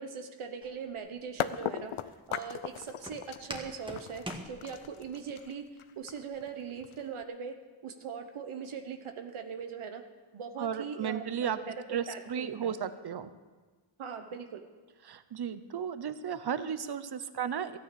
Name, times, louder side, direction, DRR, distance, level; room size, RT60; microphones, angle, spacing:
voice 1, 0.0-1.9 2.3-5.6 6.0-7.5 7.8-10.0 10.3-12.7 14.0-14.7, right 6 dB, 85° right, 6 dB, 1.1 m, -40 dB
Walk footsteps, 0.6-5.2, right 1 dB, 10° right, 1.5 m, -46 dB
sound 1, 1.0-1.1 1.4-7.2, left 10 dB, 85° left, 0.6 m, -38 dB
voice 2, 10.6-11.6 11.9-13.3 15.0-17.8, right 8 dB, 55° right, 12 dB, 0.8 m, -34 dB
13.5 x 9.3 x 6.9 m, 1.3 s
wide cardioid pair, 90°, 48 cm